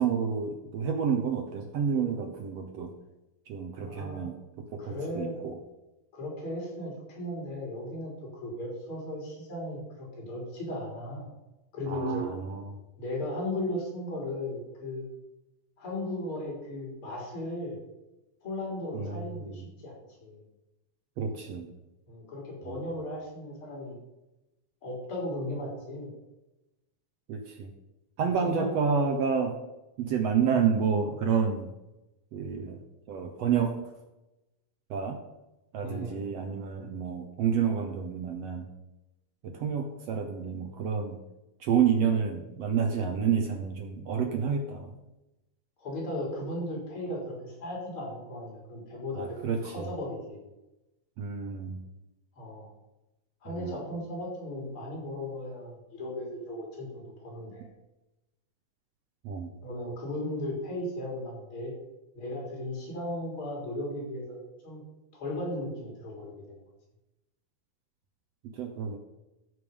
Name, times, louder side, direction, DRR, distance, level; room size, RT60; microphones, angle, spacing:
voice 1, 0.0-2.9 3.5-4.4 4.7-5.5 11.9-12.7 18.9-19.4 21.2-21.7 22.7-22.8 27.3-27.7 28.2-29.5 30.0-31.7 32.3-32.8 33.1-33.7 34.9-35.2 35.7-38.6 39.4-41.2 41.6-44.9 49.1-49.9 51.2-51.8 53.6-53.8 59.2-59.5 68.6-69.0, right 6 dB, 75° right, 5 dB, 1.5 m, -29 dB
voice 2, 3.8-4.3 4.8-5.3 6.1-8.1 8.4-11.3 11.7-12.3 13.0-15.0 15.8-17.8 18.4-19.9 20.2-20.4 22.1-24.0 24.8-26.1 28.2-28.8 30.4-30.5 35.8-36.3 45.8-50.4 52.4-52.7 53.4-57.7 59.6-61.7 62.1-64.4 64.6-64.8 65.1-66.3, left 1 dB, 35° left, -2 dB, 4.7 m, -36 dB
13.5 x 7.1 x 5.4 m, 0.97 s
omnidirectional pair, 4.3 m